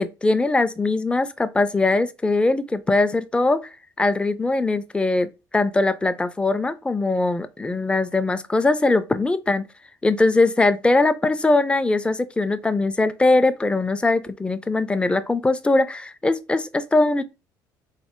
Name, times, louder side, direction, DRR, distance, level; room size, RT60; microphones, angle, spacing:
voice 1, 0.0-3.6 4.0-9.6 10.0-17.2, left 2 dB, 10° left, 0.3 m, -21 dB
3.1 x 2.0 x 2.9 m
supercardioid pair, 80°, 9 cm